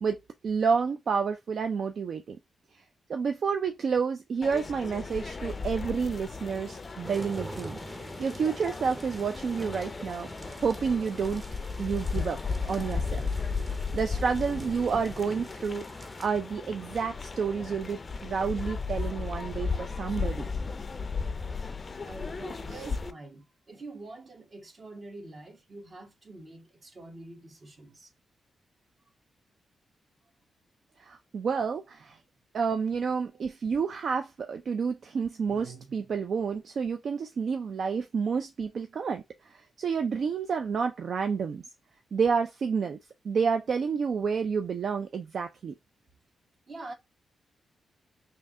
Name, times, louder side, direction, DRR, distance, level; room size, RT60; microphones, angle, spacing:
voice 1, 0.0-2.4 2.7-2.8 3.1-10.3 10.6-11.4 11.8-12.4 12.7-13.3 13.8-20.5 31.0-32.2 32.5-41.6 42.1-43.0 43.2-45.7, right 5 dB, 65° right, 0.4 m, -30 dB
sound 1, 4.4-23.1, left 4 dB, 40° left, 0.4 m, -35 dB
sound 2, 7.0-16.3, right 1 dB, 15° right, 0.7 m, -44 dB
voice 2, 22.0-28.1 33.3-33.4 46.7-46.9, right 2 dB, 45° right, 1.1 m, -45 dB
3.2 x 2.8 x 3.5 m
cardioid pair, 85°, 0 cm